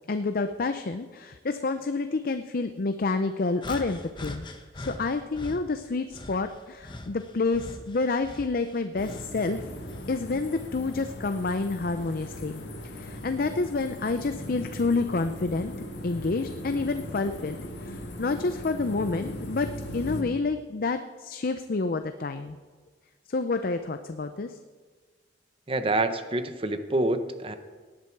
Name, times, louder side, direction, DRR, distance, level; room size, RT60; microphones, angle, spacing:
voice 1, 0.1-4.5 4.8-9.6 10.1-12.6 12.9-15.7 16.0-22.6 23.3-24.6, left 3 dB, 55° left, 9 dB, 0.6 m, -29 dB
sound 1, 3.6-5.6 6.1-9.4 9.8-11.3 12.0-12.2 13.1-13.3, left 1 dB, 25° left, 1.1 m, -42 dB
sound 2, 9.0-20.2, left 1 dB, 75° left, 1.9 m, -39 dB
voice 2, 25.7-27.5, right 2 dB, 30° right, 9 dB, 1.0 m, -27 dB
18.0 x 10.5 x 4.7 m, 1.4 s
head